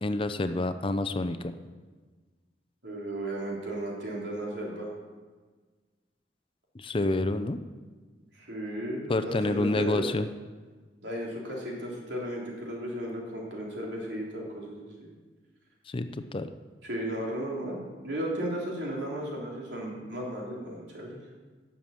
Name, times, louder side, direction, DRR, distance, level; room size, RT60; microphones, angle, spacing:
voice 1, 0.0-1.5 6.7-7.6 9.1-10.3 15.9-16.5, left 2 dB, 30° left, 10 dB, 0.5 m, -28 dB
voice 2, 2.8-4.9 8.3-10.0 11.0-15.1 16.8-21.2, right 1 dB, 85° right, -3 dB, 3.4 m, -35 dB
11.5 x 7.1 x 7.4 m, 1.4 s
head